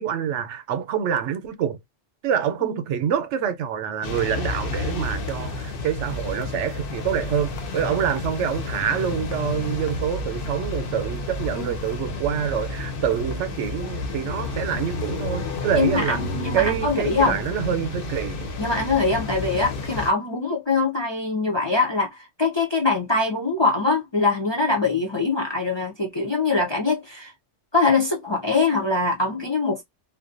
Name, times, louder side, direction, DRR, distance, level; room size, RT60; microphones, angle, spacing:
voice 1, 0.0-1.8 2.2-16.2 16.5-18.5, right 8 dB, 90° right, 0.9 m, -26 dB
sound 1, 4.0-20.1, left 3 dB, 60° left, 0.8 m, -31 dB
voice 2, 15.7-17.4 18.6-27.3 27.7-29.8, left 3 dB, 35° left, 0.4 m, -23 dB
2.5 x 2.1 x 2.5 m
omnidirectional pair, 1.2 m